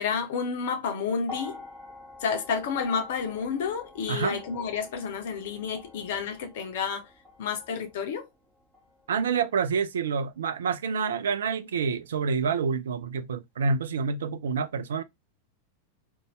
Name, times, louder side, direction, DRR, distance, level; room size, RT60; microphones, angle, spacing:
voice 1, 0.0-1.6 2.2-7.1 7.4-8.3, left 6 dB, 55° left, 0.6 m, -30 dB
sound 1, 1.2-9.6 10.6-10.7, left 3 dB, 15° right, 1.2 m, -47 dB
voice 2, 4.1-4.4 9.1-15.0, right 5 dB, 65° right, 0.3 m, -28 dB
2.6 x 2.3 x 3.0 m
figure-of-eight pair, 90°, 0 cm